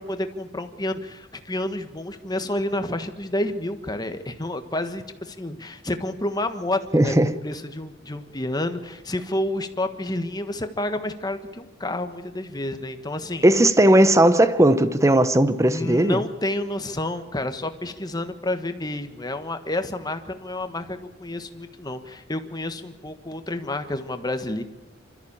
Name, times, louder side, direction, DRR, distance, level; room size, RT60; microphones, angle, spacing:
voice 1, 0.0-7.1 7.4-13.4 15.7-24.6, left 1 dB, 20° left, 1.4 m, -29 dB
voice 2, 6.9-7.4 13.4-16.2, right 1 dB, 15° right, 0.9 m, -17 dB
26.0 x 14.0 x 8.7 m
head